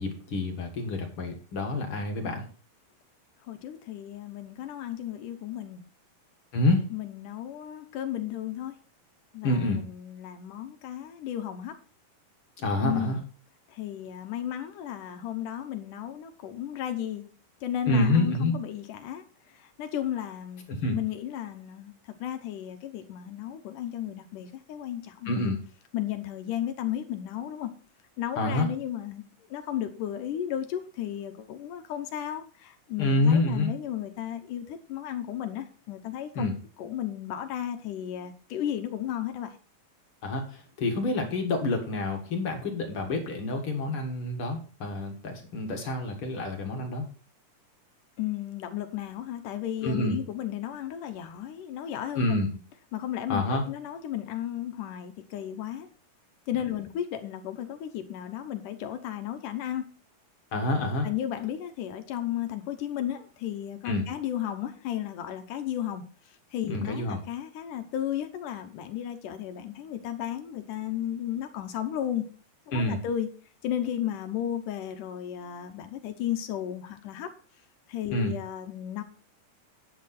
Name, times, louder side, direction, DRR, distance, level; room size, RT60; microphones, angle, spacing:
voice 1, 0.0-2.4 6.5-6.8 9.4-9.8 12.6-13.2 17.9-18.5 20.7-21.0 25.3-25.6 28.4-28.7 33.0-33.7 36.4-36.5 40.2-47.0 49.8-50.2 52.2-52.5 53.3-53.6 60.5-61.1 63.8-64.1 66.7-67.2 72.7-73.0 78.1-78.3, left 2 dB, 45° left, 3 dB, 2.2 m, -27 dB
voice 2, 3.4-5.8 6.9-8.8 9.3-11.8 12.8-13.2 13.7-17.2 17.6-19.2 19.5-20.6 20.9-21.9 22.2-25.5 25.9-27.7 28.2-29.2 29.5-36.5 36.8-39.6 48.2-52.4 52.9-55.9 56.5-59.9 61.0-66.0 66.5-72.3 72.7-73.3 73.6-77.3 77.9-79.0, left 11 dB, 75° left, 8 dB, 2.4 m, -34 dB
10.5 x 8.5 x 4.1 m, 0.39 s
omnidirectional pair, 3.8 m